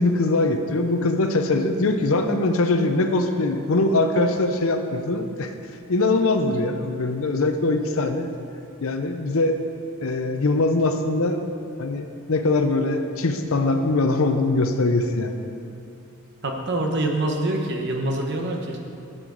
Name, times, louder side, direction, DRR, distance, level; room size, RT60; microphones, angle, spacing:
voice 1, 0.0-5.5 5.9-8.3 8.8-9.6 10.0-11.4 11.8-15.4, left 2 dB, 65° left, 7 dB, 0.6 m, -22 dB
voice 2, 16.4-18.8, right 1 dB, 50° right, 2 dB, 1.0 m, -25 dB
11.0 x 7.7 x 3.9 m, 2.5 s
head